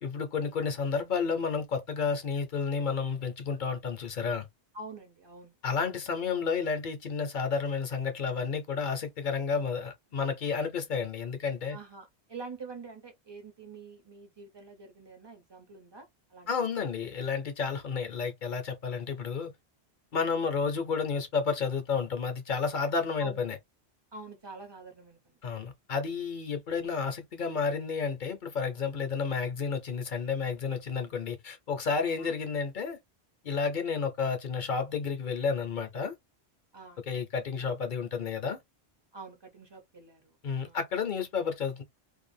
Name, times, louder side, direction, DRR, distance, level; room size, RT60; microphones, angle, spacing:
voice 1, 0.0-4.5 5.6-11.8 16.5-19.5 20.1-23.6 25.4-33.0 33.4-36.1 37.0-38.6 40.4-41.8, left 5 dB, 50° left, 0.8 m, -31 dB
voice 2, 4.7-5.5 11.7-16.1 16.3-16.5 23.2-23.4 24.1-25.4 32.0-32.3 36.7-37.0 39.1-40.8, right 3 dB, 25° right, 0.7 m, -46 dB
2.6 x 2.3 x 2.6 m
omnidirectional pair, 1.2 m